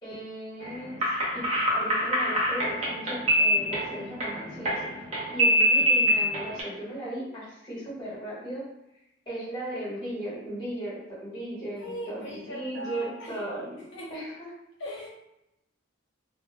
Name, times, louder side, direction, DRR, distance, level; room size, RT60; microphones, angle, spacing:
voice 1, 0.0-1.0 1.3-1.4 1.7-5.1 5.3-8.6 9.3-13.8 14.1-14.5, right 1 dB, 20° left, -9 dB, 1.0 m, -37 dB
sound 1, 0.6-6.6, equal, 35° right, 0.6 m, -25 dB
voice 2, 11.8-13.5 13.9-14.2 14.8-15.1, equal, 65° left, -3 dB, 0.4 m, -39 dB
2.1 x 2.1 x 3.0 m, 0.88 s
head